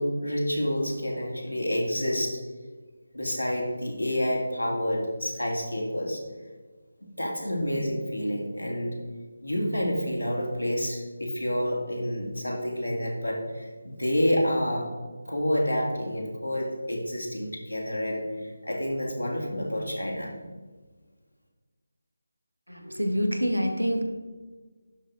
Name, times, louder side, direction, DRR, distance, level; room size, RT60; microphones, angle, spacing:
voice 1, 0.0-2.4 3.1-6.2 7.2-9.0 9.4-14.9 15.3-20.3, equal, 85° left, -1 dB, 2.3 m, -28 dB
voice 2, 22.7-24.0, equal, 85° right, 5 dB, 1.2 m, -26 dB
11.0 x 4.0 x 4.8 m, 1.4 s
figure-of-eight pair, 155°, 0 cm